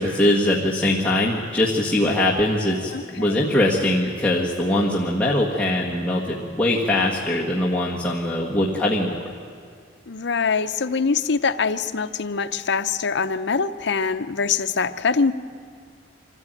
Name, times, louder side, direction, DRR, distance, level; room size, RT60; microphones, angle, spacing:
voice 1, 0.0-9.2, left 1 dB, 5° left, -6 dB, 1.6 m, -22 dB
voice 2, 2.9-3.5 10.1-15.3, left 5 dB, 60° left, 9 dB, 0.7 m, -24 dB
25.0 x 14.5 x 9.1 m, 2.1 s
head